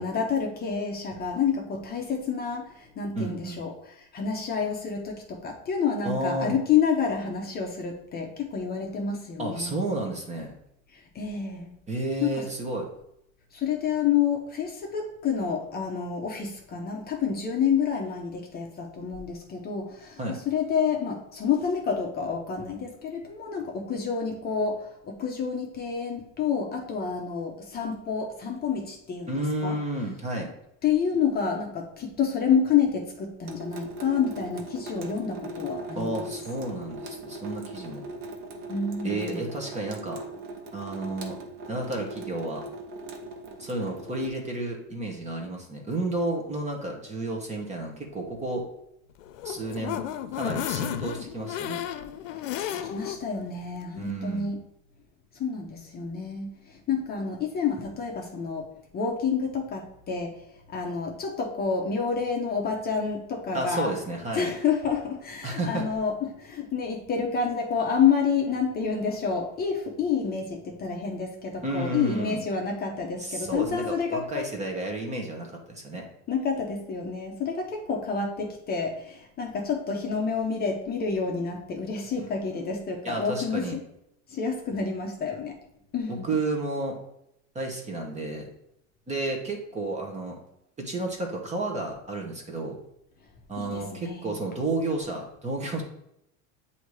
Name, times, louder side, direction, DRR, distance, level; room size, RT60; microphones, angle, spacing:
voice 1, 0.0-9.7 10.9-11.7 12.2-12.5 13.5-29.3 29.6-29.8 30.8-36.3 38.7-39.4 52.3-52.5 52.8-54.6 55.3-58.6 58.9-60.3 60.7-63.9 64.3-74.5 76.3-83.8 84.3-85.6 85.9-86.3 93.6-94.3, left 6 dB, 25° left, 1 dB, 0.8 m, -29 dB
voice 2, 3.1-3.6 6.0-6.6 9.4-10.5 11.9-12.9 20.2-20.4 29.3-30.5 35.9-38.0 39.0-40.2 40.7-41.4 41.7-42.6 43.6-48.6 49.4-50.0 50.3-51.8 54.0-54.5 63.5-64.5 65.4-65.8 71.6-72.4 73.2-76.0 83.0-83.8 86.1-87.0 87.5-88.5 89.1-90.4 90.8-92.8 93.5-95.8, right 2 dB, 20° right, 1 dB, 1.0 m, -31 dB
Water tap faucet / Sink (filling or washing) / Drip, 33.5-44.3, right 1 dB, 65° right, 1.0 m, -39 dB
sound 1, 49.2-53.2 53.6-53.7 54.0-54.1, left 11 dB, 80° left, 0.7 m, -33 dB
7.9 x 2.8 x 4.7 m, 0.79 s
supercardioid pair, 140°, 38 cm